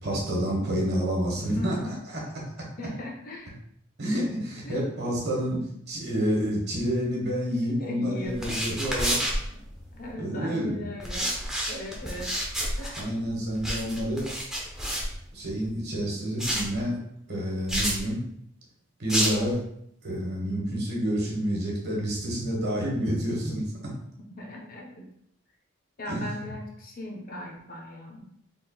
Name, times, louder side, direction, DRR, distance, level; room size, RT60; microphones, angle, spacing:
voice 1, 0.0-1.9 4.0-5.6 5.9-9.2 10.2-10.9 13.0-14.3 15.3-18.2 19.0-19.6 20.0-23.9 26.1-26.5, equal, 50° right, -3 dB, 1.3 m, -29 dB
voice 2, 1.4-2.0 2.8-3.5 4.6-4.9 7.8-8.4 9.5-9.6 9.9-11.4 11.7-12.4 12.8-13.1 24.4-25.1 26.0-28.3, left 1 dB, 40° left, 0 dB, 0.7 m, -38 dB
sound 1, 8.2-10.1 11.0-15.7 16.4-16.8 17.7-18.0 19.1-19.5, equal, 5° right, 0.6 m, -30 dB
4.1 x 3.7 x 2.3 m, 0.71 s
head